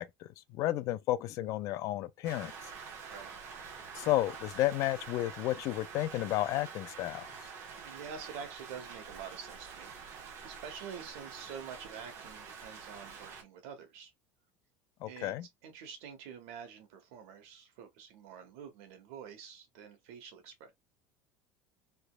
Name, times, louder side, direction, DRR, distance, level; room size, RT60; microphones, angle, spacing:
voice 1, 0.0-2.5 3.9-7.3 15.0-15.5, left 15 dB, 55° left, 0.4 m, -32 dB
Rain, 2.2-13.4, right 6 dB, 45° right, 1.2 m, -47 dB
voice 2, 7.8-10.1 10.4-14.1 15.1-15.3 15.6-20.7, right 7 dB, 85° right, 1.3 m, -47 dB
3.3 x 2.9 x 2.2 m
cardioid pair, 135°, 7 cm